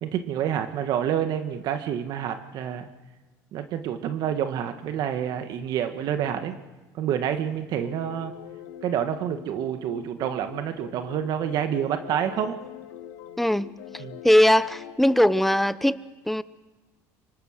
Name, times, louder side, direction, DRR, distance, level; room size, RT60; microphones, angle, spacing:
voice 1, 0.0-2.9 3.5-6.6 7.0-8.3 8.8-12.6 14.0-14.2, right 9 dB, 60° right, 1.6 m, -28 dB
sound 1, 7.8-15.4, left 11 dB, 85° left, 1.7 m, -43 dB
voice 2, 13.4-13.7 14.2-16.4, left 1 dB, ahead, 0.9 m, -20 dB
25.0 x 25.0 x 6.6 m
supercardioid pair, 105°, 8 cm